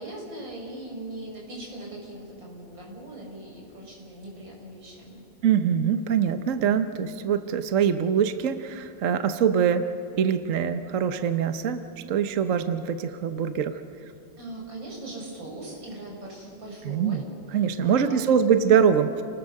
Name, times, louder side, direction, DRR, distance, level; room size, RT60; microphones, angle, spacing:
voice 1, 0.0-5.2 14.4-17.2 17.5-18.4, right 1 dB, 75° right, -2 dB, 6.5 m, -40 dB
voice 2, 5.4-9.9 10.2-13.8 16.8-17.3 17.5-19.2, right 7 dB, 50° right, 9 dB, 1.1 m, -23 dB
29.5 x 20.0 x 6.6 m, 2.6 s
omnidirectional pair, 2.1 m